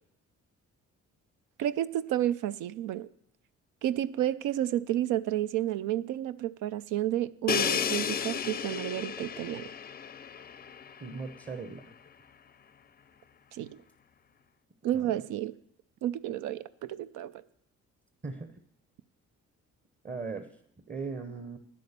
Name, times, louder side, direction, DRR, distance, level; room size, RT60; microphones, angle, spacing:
voice 1, 1.6-3.1 3.8-9.7 13.5-13.8 14.8-15.5 16.0-17.4, right 12 dB, 85° right, 14 dB, 0.5 m, -31 dB
Crash cymbal, 7.5-11.3, left 7 dB, 30° left, 0.5 m, -33 dB
voice 2, 11.0-11.9 14.9-15.2 18.2-18.5 20.0-20.5 20.9-21.6, right 4 dB, 25° right, 8 dB, 0.8 m, -38 dB
9.5 x 8.5 x 6.7 m, 0.73 s
cardioid pair, 90°, 30 cm